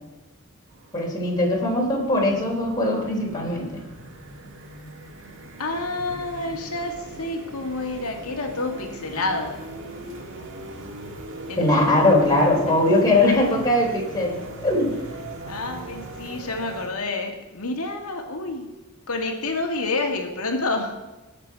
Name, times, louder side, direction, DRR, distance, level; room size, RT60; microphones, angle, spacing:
sound 1, 0.7-16.9, right 1 dB, 60° right, 1.9 m, -39 dB
voice 1, 0.9-3.8 11.6-14.9, left 1 dB, 20° left, -3 dB, 3.4 m, -21 dB
voice 2, 5.6-9.6 11.5-12.3 12.7-12.8 15.5-18.7 19.1-21.0, left 2 dB, 90° left, 3 dB, 2.1 m, -29 dB
19.0 x 7.5 x 4.7 m, 1.1 s
head